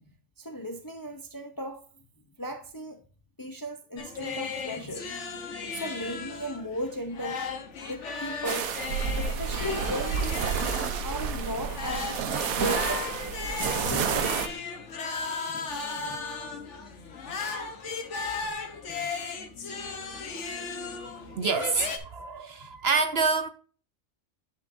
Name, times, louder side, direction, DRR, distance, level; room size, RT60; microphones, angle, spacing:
voice 1, 0.4-1.8 2.4-3.0 3.4-5.1 5.6-7.5 7.8-8.7 9.2-10.5 11.0-12.2 12.5-13.2 15.5-16.2 18.4-19.1, right 1 dB, 25° left, 0.5 m, -36 dB
sound 1, 4.0-22.0, left 4 dB, 60° left, 1.4 m, -36 dB
sound 2, 8.4-14.5, right 6 dB, 85° right, 1.3 m, -29 dB
voice 2, 21.0-23.5, right 4 dB, 60° right, 0.8 m, -27 dB
11.0 x 5.7 x 2.6 m
omnidirectional pair, 1.4 m